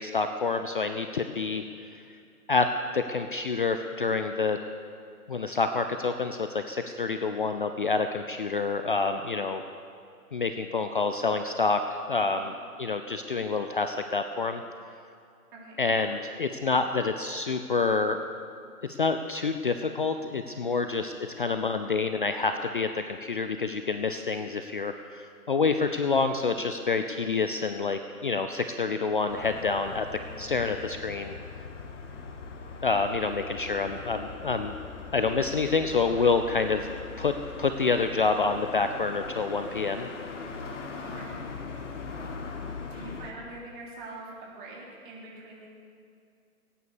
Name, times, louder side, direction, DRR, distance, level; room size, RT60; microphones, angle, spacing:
voice 1, 0.0-1.7 1.9-2.0 2.5-2.7 2.9-4.6 5.3-9.6 10.3-14.6 15.8-18.2 18.9-30.0 30.4-31.3 32.8-34.7 35.1-36.9 37.2-37.3 37.6-40.1, left 4 dB, 35° left, 7 dB, 0.5 m, -27 dB
voice 2, 15.5-15.8 20.6-20.9 27.1-27.3 36.2-36.6 41.0-41.4 42.9-45.7, right 2 dB, 35° right, -4 dB, 3.7 m, -44 dB
sound 1, 29.3-43.3, left 4 dB, 50° left, 1.7 m, -41 dB
18.0 x 9.8 x 6.6 m, 2.4 s
figure-of-eight pair, 140°, 45 cm